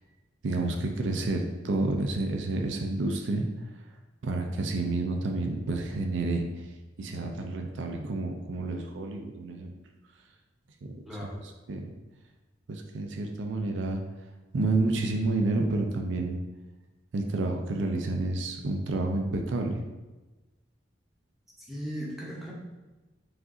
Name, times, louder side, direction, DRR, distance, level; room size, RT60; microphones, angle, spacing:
voice 1, 0.4-3.5 4.2-6.5 7.0-9.7 10.8-11.3 11.7-11.9 12.7-14.0 14.5-16.4 17.1-19.8, right 2 dB, 75° right, 3 dB, 0.5 m, -29 dB
voice 2, 11.1-11.4 21.7-22.5, equal, ahead, -5 dB, 0.8 m, -37 dB
4.9 x 2.5 x 3.7 m, 1.2 s
head